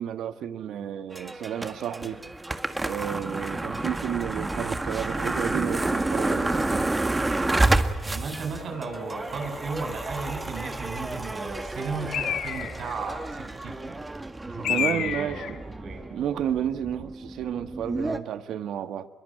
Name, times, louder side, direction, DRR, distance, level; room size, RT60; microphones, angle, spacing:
voice 1, 0.0-2.2 2.8-6.9 14.7-15.6 16.1-19.1, right 9 dB, 75° right, 1.5 m, -31 dB
sound 1, 1.1-18.2, right 2 dB, 15° right, 1.7 m, -30 dB
voice 2, 8.0-13.9 14.5-15.5 15.8-16.0, right 4 dB, 60° right, 7.8 m, -35 dB
Bird, 12.1-13.0 14.6-15.6, left 9 dB, 75° left, 2.2 m, -29 dB
26.0 x 22.5 x 9.0 m
cardioid pair, 105°, 0 cm